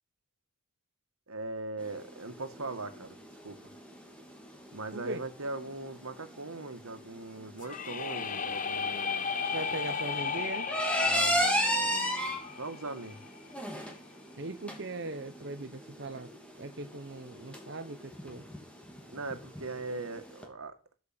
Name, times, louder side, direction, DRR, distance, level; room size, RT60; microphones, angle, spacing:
voice 1, 1.3-3.2 3.4-3.7 4.7-9.3 11.0-13.2 19.1-20.8, right 2 dB, 80° right, 2.0 m, -40 dB
sound 1, 1.8-20.4, equal, 5° left, 2.7 m, -35 dB
voice 2, 4.9-5.2 9.5-10.7 14.4-16.3 16.6-18.4, right 2 dB, 50° right, 0.9 m, -39 dB
sound 2, 7.6-13.5, left 6 dB, 35° left, 0.9 m, -35 dB
13.0 x 8.2 x 7.8 m
head